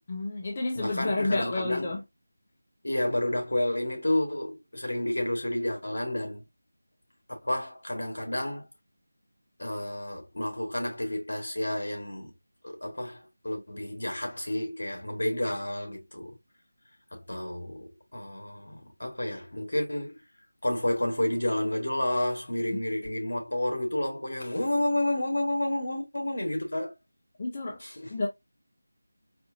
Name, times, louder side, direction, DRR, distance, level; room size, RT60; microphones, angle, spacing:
voice 1, 0.1-2.0 22.7-22.8 27.4-27.8 28.1-28.3, left 2 dB, 30° left, 0.6 m, -30 dB
voice 2, 0.8-2.0 2.8-6.4 7.3-8.7 9.6-12.3 12.6-16.4 17.1-20.2 20.6-26.9 27.8-28.1, left 1 dB, 80° left, 1.8 m, -30 dB
4.2 x 2.6 x 2.3 m
figure-of-eight pair, 170°, 0 cm